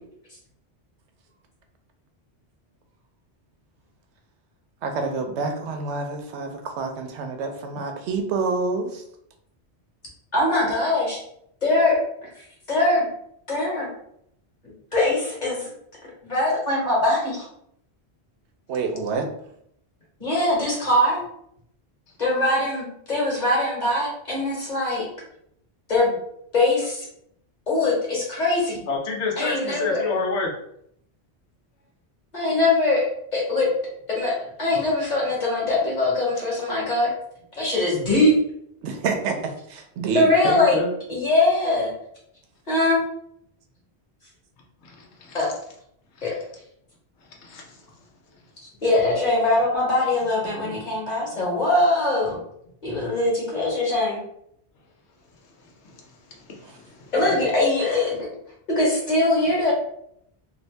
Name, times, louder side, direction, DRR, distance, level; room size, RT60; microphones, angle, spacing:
voice 1, 4.8-9.0 18.7-19.3 38.8-40.3 56.6-56.7, right 4 dB, 85° right, 5 dB, 0.9 m, -27 dB
voice 2, 10.3-11.2 11.6-12.0 12.7-13.1 13.5-13.9 14.6-15.7 16.2-17.4 20.2-21.2 22.2-25.1 25.9-26.2 26.5-27.1 27.7-28.8 29.4-30.1 32.3-33.0 33.3-33.7 34.1-34.3 34.6-37.1 37.6-38.4 40.1-40.7 41.1-41.9 42.7-43.0 45.3-45.5 46.2-46.3 48.8-52.4 52.8-54.2 57.1-58.3 58.7-59.7, left 2 dB, 40° left, -4 dB, 1.3 m, -22 dB
voice 3, 28.9-30.5 40.4-40.9 44.8-45.5 46.2-46.3 47.3-47.8 50.6-50.8 52.9-53.1 55.6-57.1, left 3 dB, 85° left, 0 dB, 1.0 m, -30 dB
2.7 x 2.6 x 3.2 m, 0.71 s
omnidirectional pair, 1.1 m